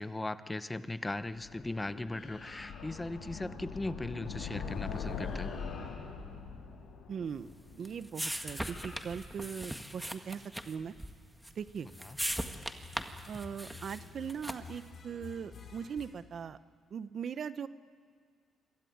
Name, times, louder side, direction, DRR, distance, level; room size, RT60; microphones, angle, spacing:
voice 1, 0.0-5.6 12.1-12.2, left 2 dB, 15° left, 13 dB, 0.9 m, -38 dB
sound 1, 1.2-8.3, left 5 dB, 85° left, 4.7 m, -42 dB
sound 2, 2.0-3.2 4.8-4.9 5.2-6.3 8.3-9.5 11.8-16.1, left 5 dB, 50° left, 4.8 m, -53 dB
voice 2, 7.1-10.9 11.5-11.9 12.9-16.6 16.9-17.7, right 7 dB, 55° right, 14 dB, 0.8 m, -40 dB
sound 3, 7.4-14.9, equal, 5° right, 1.7 m, -40 dB
25.5 x 22.0 x 9.5 m, 2.1 s
cardioid pair, 85°, 0 cm